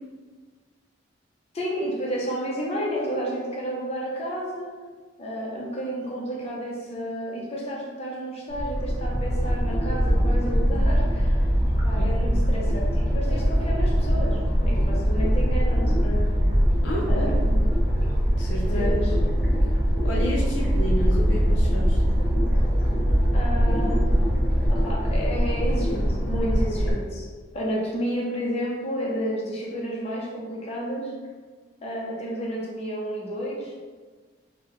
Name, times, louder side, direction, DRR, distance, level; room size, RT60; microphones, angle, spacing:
voice 1, 1.5-4.7 5.2-11.4 11.8-14.4 14.6-16.2 17.1-17.6 18.6-19.1 23.3-24.0 24.7-27.3 27.5-31.1 31.8-33.7, equal, 35° left, -4 dB, 0.6 m, -31 dB
sound 1, 8.5-26.9, equal, 50° left, 1.0 m, -22 dB
voice 2, 11.9-12.4 16.8-17.3 18.4-18.8 20.0-22.0, equal, 75° left, -3 dB, 0.6 m, -31 dB
3.7 x 2.1 x 3.1 m, 1.4 s
head